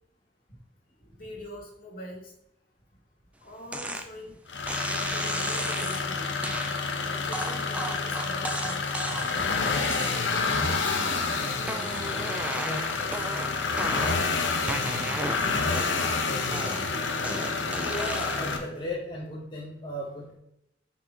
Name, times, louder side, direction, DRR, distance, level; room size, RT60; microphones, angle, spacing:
voice 1, 0.9-2.3 3.4-4.4 4.8-6.3 6.7-9.0 9.3-10.0 10.6-12.0 13.2-13.4 13.7-14.5 14.9-15.6 16.5-17.1 17.7-17.8, equal, 50° left, -1 dB, 2.3 m, -44 dB
sound 1, 3.7-4.1 4.7-6.0 6.4-6.7 7.3-9.4 9.9-10.5 10.9-11.3 11.6-14.3 14.7-16.1 16.5-18.5, right 1 dB, 5° right, 0.5 m, -35 dB
sound 2, 4.5-18.6, left 4 dB, 70° left, 1.0 m, -29 dB
voice 2, 12.6-13.1 17.8-20.4, left 1 dB, 25° left, -5 dB, 1.0 m, -36 dB
6.5 x 5.8 x 3.0 m, 0.81 s
head